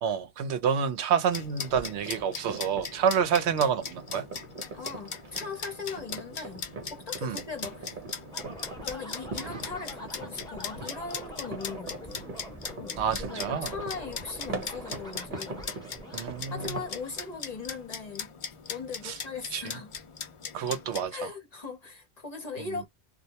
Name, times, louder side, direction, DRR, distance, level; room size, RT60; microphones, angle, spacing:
voice 1, 0.0-4.2 7.2-7.4 13.0-13.7 16.1-16.8 19.0-19.2 19.5-19.6 20.5-21.3 22.6-22.7, right 7 dB, 80° right, 0.9 m, -28 dB
sound 1, 1.3-21.0, left 6 dB, 55° left, 0.3 m, -40 dB
sound 2, 1.3-17.0, right 3 dB, 50° right, 0.9 m, -43 dB
voice 2, 4.7-8.0 8.8-12.3 12.8-15.7 16.5-18.3 18.7-19.9 21.1-22.9, left 4 dB, 40° left, 0.9 m, -39 dB
sound 3, 8.3-17.9, left 1 dB, 5° left, 0.9 m, -45 dB
2.3 x 2.0 x 2.7 m
omnidirectional pair, 1.1 m